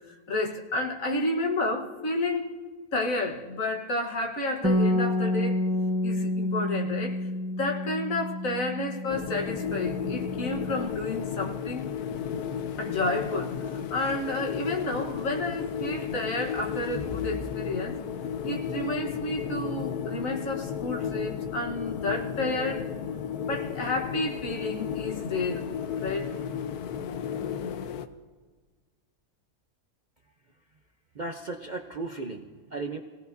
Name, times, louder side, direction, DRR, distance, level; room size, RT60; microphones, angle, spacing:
voice 1, 0.1-2.6 2.9-5.7 6.0-7.3 7.6-11.9 12.8-18.0 18.4-22.9 23.4-25.6 26.0-26.3, left 2 dB, 65° left, 1.7 m, -31 dB
Bass guitar, 4.6-10.9, left 1 dB, 10° right, 1.0 m, -29 dB
sound 1, 9.1-28.1, left 8 dB, 85° left, 1.2 m, -34 dB
voice 2, 31.1-33.0, right 3 dB, 45° right, 0.7 m, -35 dB
25.0 x 17.5 x 2.7 m
omnidirectional pair, 1.6 m